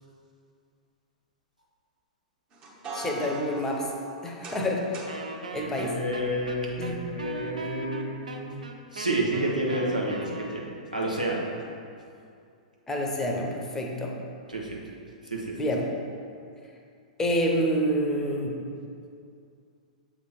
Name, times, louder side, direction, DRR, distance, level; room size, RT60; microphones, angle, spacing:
sound 1, 2.5-5.2, right 2 dB, 25° right, 1.0 m, -39 dB
voice 1, 2.9-3.9 4.2-5.0 5.5-6.0 6.8-7.0 12.9-14.2 15.6-15.9 17.2-18.6, equal, 10° left, 1 dB, 0.7 m, -28 dB
Wind instrument woodwind instrument, 5.1-10.9, right 3 dB, 75° right, 0.5 m, -39 dB
voice 2, 5.6-8.6 8.9-11.5 14.5-14.8 15.2-15.6, right 1 dB, 90° right, -3 dB, 1.1 m, -30 dB
7.3 x 3.4 x 4.4 m, 2.4 s
figure-of-eight pair, 105°, 4 cm